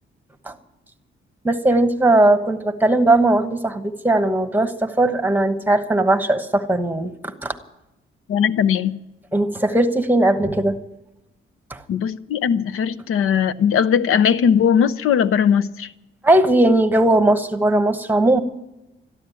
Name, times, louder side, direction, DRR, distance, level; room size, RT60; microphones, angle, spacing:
voice 1, 1.4-7.5 9.3-10.8 11.7-11.8 16.2-18.4, right 1 dB, 10° right, 1.0 m, -18 dB
voice 2, 8.3-9.0 11.9-15.9, left 8 dB, 85° left, 0.7 m, -19 dB
13.5 x 12.0 x 9.0 m
wide cardioid pair, 155°, 21 cm